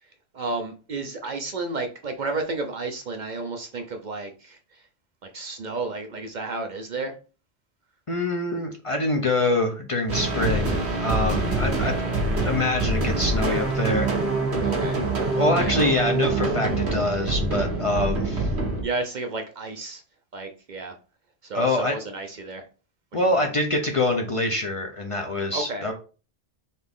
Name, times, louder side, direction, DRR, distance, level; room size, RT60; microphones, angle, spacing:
voice 1, 0.3-4.8 5.2-7.1 11.8-12.1 14.6-15.0 15.6-15.8 18.8-20.0 20.3-20.9 21.4-22.7 23.1-23.5 25.5-25.9, right 3 dB, 50° right, 5 dB, 0.7 m, -32 dB
voice 2, 8.1-12.0 12.4-14.1 15.4-18.5 21.5-21.9 23.1-25.9, left 2 dB, 40° left, 2 dB, 0.6 m, -25 dB
sound 1, 10.1-18.8, right 2 dB, 80° right, 1.6 m, -25 dB
4.1 x 3.5 x 3.6 m, 0.36 s
omnidirectional pair, 1.1 m